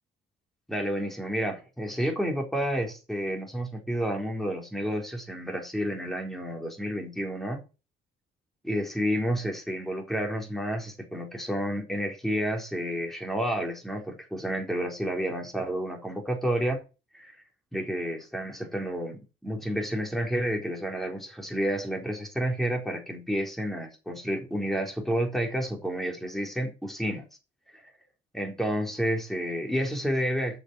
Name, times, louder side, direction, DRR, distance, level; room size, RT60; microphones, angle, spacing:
voice 1, 0.7-7.6 8.6-16.8 17.1-17.3 17.7-27.2 27.7-27.8 28.3-30.6, equal, ahead, 4.1 m, -30 dB
8.3 x 6.7 x 8.3 m
cardioid pair, 90°, 20 cm